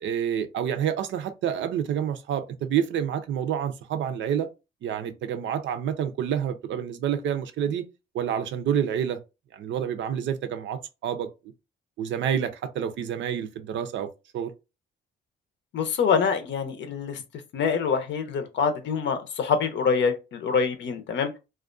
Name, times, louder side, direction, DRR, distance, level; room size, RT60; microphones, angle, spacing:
voice 1, 0.0-4.5 4.8-7.9 8.1-9.2 9.5-11.3 12.0-14.1 14.3-14.5, right 9 dB, 70° right, 0.5 m, -28 dB
voice 2, 15.7-17.2 17.5-21.3, left 6 dB, 65° left, 0.6 m, -25 dB
2.4 x 2.2 x 2.4 m
cardioid pair, 90°, 20 cm